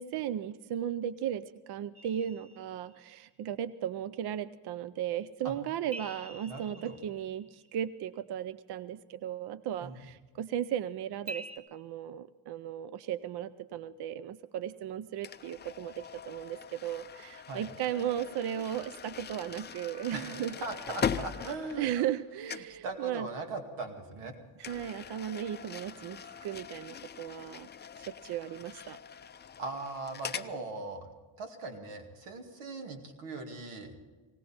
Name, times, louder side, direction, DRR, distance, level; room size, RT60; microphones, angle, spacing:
voice 1, 0.0-20.6 21.8-23.3 24.6-27.7 28.0-29.0, right 10 dB, 55° right, 16 dB, 0.5 m, -36 dB
sound 1, 1.9-3.3 5.9-7.9 11.3-11.6, right 2 dB, 25° right, 1.7 m, -47 dB
voice 2, 6.4-7.0 9.8-9.9 17.5-17.7 20.1-22.0 22.8-24.3 29.6-31.1 31.4-33.9, right 3 dB, 90° right, 4 dB, 2.3 m, -40 dB
sound 2, 15.2-22.2 22.5-22.8 24.6-30.5, left 7 dB, 25° left, 0.4 m, -41 dB
19.0 x 17.5 x 4.3 m, 1.3 s
cardioid pair, 140°, 48 cm